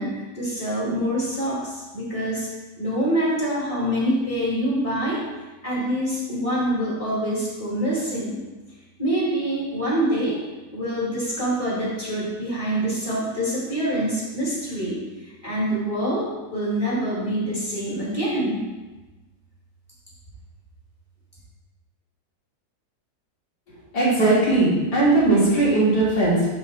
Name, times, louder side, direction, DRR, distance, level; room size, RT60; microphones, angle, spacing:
voice 1, 0.0-2.5 2.8-5.2 5.6-8.4 9.0-10.4 10.7-18.7, right 1 dB, 20° left, -6 dB, 2.4 m, -25 dB
voice 2, 23.9-26.5, right 2 dB, 70° left, -8 dB, 3.4 m, -18 dB
11.0 x 4.0 x 4.1 m, 1.2 s
omnidirectional pair, 1.8 m